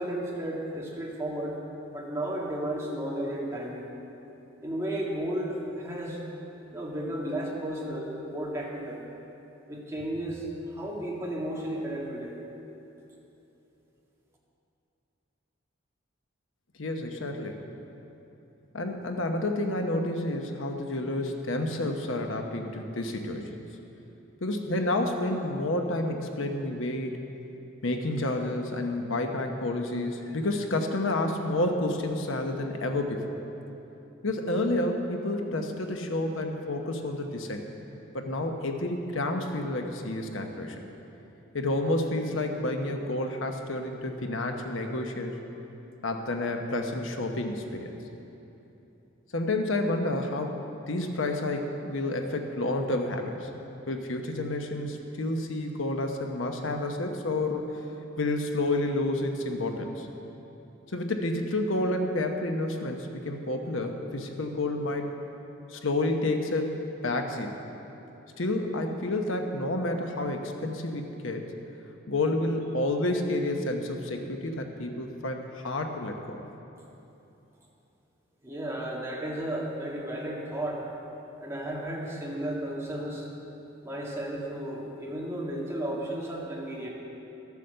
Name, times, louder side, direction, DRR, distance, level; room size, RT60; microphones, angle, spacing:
voice 1, 0.0-1.6 1.9-3.9 4.6-6.2 6.7-9.0 9.7-12.4 78.4-80.9 81.4-83.3 83.8-86.9, right 1 dB, 15° right, -4 dB, 1.9 m, -33 dB
voice 2, 16.8-17.6 18.7-23.6 24.4-27.2 27.8-33.3 34.2-37.6 38.1-40.8 41.5-45.4 46.0-47.9 49.3-50.6 50.9-53.5 53.9-57.7 58.2-60.1 60.9-65.1 65.7-66.8 67.0-67.6 68.4-71.5 72.1-76.5, left 2 dB, 80° left, 4 dB, 1.0 m, -30 dB
13.5 x 8.3 x 6.8 m, 3.0 s
head